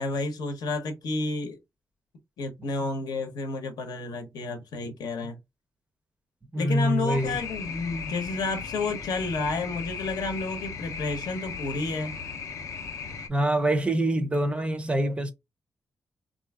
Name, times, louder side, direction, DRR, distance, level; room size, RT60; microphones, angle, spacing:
voice 1, 0.0-1.6 2.4-5.4 6.5-12.1, left 3 dB, 80° left, 0.8 m, -31 dB
voice 2, 6.5-7.3 13.3-15.3, right 1 dB, 15° right, 0.4 m, -25 dB
sound 1, 7.1-13.3, left 5 dB, 55° left, 0.5 m, -37 dB
3.9 x 2.5 x 2.3 m
wide cardioid pair, 160°, 7 cm